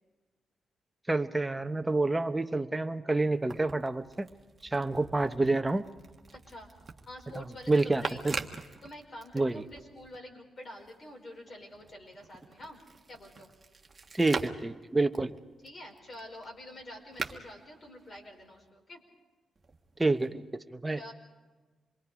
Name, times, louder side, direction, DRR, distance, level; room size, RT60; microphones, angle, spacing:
voice 1, 1.1-4.3 4.6-5.8 7.4-8.4 9.3-9.6 14.1-15.3 20.0-20.4 20.7-21.0, right 2 dB, 15° right, 8 dB, 0.9 m, -28 dB
sound 1, 3.2-10.2 10.6-18.7 19.6-20.3, right 4 dB, 30° right, 1.5 m, -44 dB
voice 2, 6.3-6.7 7.1-8.4 8.8-12.8 13.1-13.5 15.6-19.0 21.0-21.1, left 1 dB, 45° left, 1 dB, 5.1 m, -47 dB
27.5 x 22.5 x 5.0 m, 1.3 s
cardioid pair, 95°, 0 cm